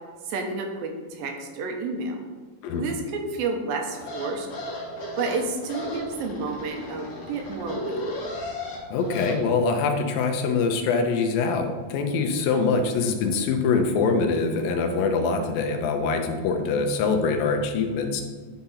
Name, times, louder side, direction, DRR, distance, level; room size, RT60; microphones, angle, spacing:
voice 1, 0.3-2.2 2.8-4.5 5.2-8.0, right 3 dB, 85° right, 3 dB, 2.6 m, -30 dB
sound 1, 3.9-9.4, left 1 dB, 50° left, 2.3 m, -35 dB
voice 2, 8.9-18.2, left 4 dB, 80° left, 5 dB, 2.5 m, -24 dB
10.0 x 4.0 x 4.1 m, 1.5 s
omnidirectional pair, 4.1 m